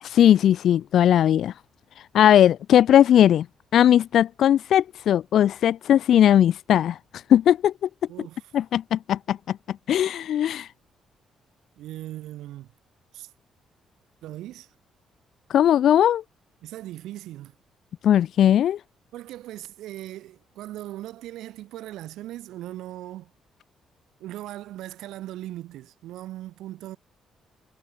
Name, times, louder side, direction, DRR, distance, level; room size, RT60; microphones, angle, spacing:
voice 1, 0.1-1.5 2.1-3.5 3.7-7.0 7.3-7.7 8.5-9.6 9.9-10.7 15.5-16.2 18.0-18.8, left 10 dB, 70° left, 0.4 m, -18 dB
voice 2, 8.1-8.5 11.8-12.7 13.1-13.3 14.2-14.7 16.6-17.5 19.1-23.3 24.2-27.0, right 14 dB, 85° right, 5.4 m, -39 dB
cardioid pair, 90°, 0 cm